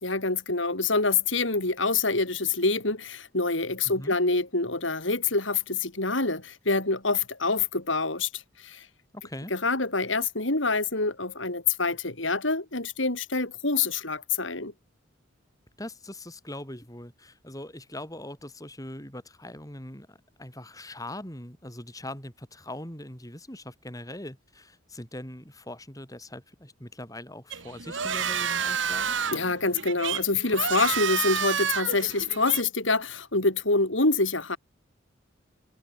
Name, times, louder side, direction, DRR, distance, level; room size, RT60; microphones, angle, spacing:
voice 1, 0.0-8.9 9.5-14.7 29.3-34.6, left 3 dB, 75° left, 5.2 m, -26 dB
voice 2, 3.8-4.1 9.1-9.5 15.8-29.2, left 1 dB, 20° left, 7.4 m, -41 dB
sound 1, 27.5-32.6, right 7 dB, 75° right, 2.5 m, -30 dB
head